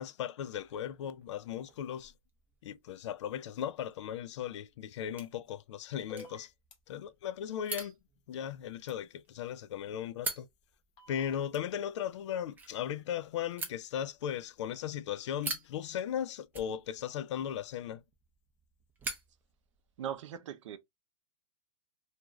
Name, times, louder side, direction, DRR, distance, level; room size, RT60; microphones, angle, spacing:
voice 1, 0.0-2.1 2.6-6.5 6.9-7.9 8.3-10.5 11.1-18.0, left 9 dB, 60° left, 0.4 m, -37 dB
sound 1, 0.5-20.2, right 3 dB, 10° right, 0.6 m, -47 dB
sound 2, 6.1-6.8 8.9-9.0 11.0-11.6, left 3 dB, 30° left, 0.9 m, -50 dB
voice 2, 20.0-20.8, right 9 dB, 60° right, 0.6 m, -39 dB
2.5 x 2.2 x 3.0 m
hypercardioid pair, 135°, 17 cm